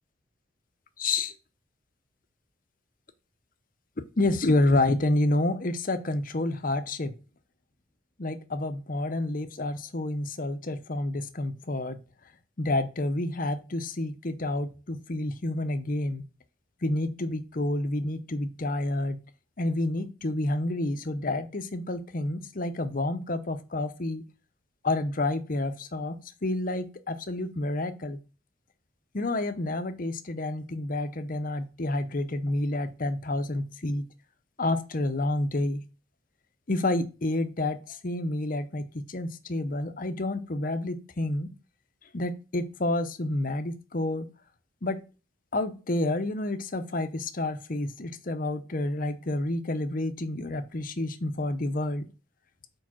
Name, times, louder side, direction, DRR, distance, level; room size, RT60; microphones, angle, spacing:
voice 1, 1.0-1.3 4.2-7.2 8.2-12.0 12.6-16.2 16.8-19.3 19.6-24.2 24.8-28.2 29.1-34.1 34.6-35.8 36.7-41.5 42.1-44.3 44.8-45.0 45.5-52.1, left 2 dB, 45° left, 10 dB, 0.7 m, -29 dB
4.9 x 4.7 x 6.1 m, 0.32 s
head